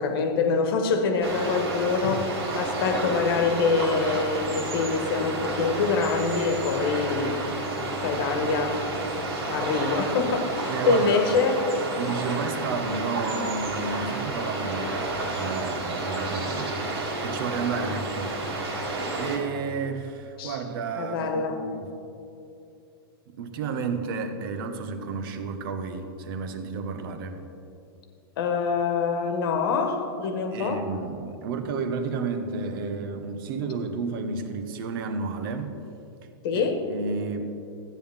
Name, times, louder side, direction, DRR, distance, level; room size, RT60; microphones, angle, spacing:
voice 1, 0.0-7.7 8.0-8.8 9.5-11.7 17.8-17.9 20.4-20.6 20.9-21.6 28.4-30.8 36.4-36.8, left 4 dB, 65° left, 5 dB, 1.4 m, -25 dB
sound 1, 1.2-19.4, right 2 dB, 80° right, 2.2 m, -31 dB
voice 2, 10.7-11.3 12.0-15.0 15.3-16.8 17.2-18.7 19.1-21.9 23.3-27.4 30.5-35.8 36.5-37.6, right 4 dB, 60° right, 8 dB, 1.1 m, -32 dB
13.5 x 9.2 x 3.6 m, 2.7 s
hypercardioid pair, 120°, 13 cm